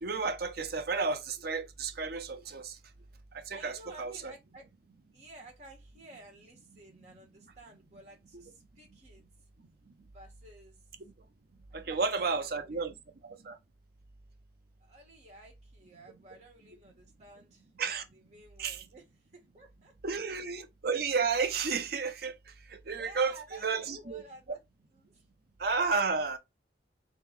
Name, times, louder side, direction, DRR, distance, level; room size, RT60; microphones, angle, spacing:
voice 1, 0.0-2.8 3.3-4.3 11.7-12.9 13.2-13.6 17.8-18.0 18.6-18.8 20.0-24.2 25.6-26.4, right 4 dB, 55° right, 0.6 m, -32 dB
voice 2, 3.5-4.7 5.1-9.2 10.1-10.8 11.8-12.8 14.8-17.7 18.1-19.0 19.3-19.9 22.9-24.6 24.9-25.2, right 1 dB, 40° right, 1.7 m, -53 dB
3.4 x 3.0 x 3.6 m
head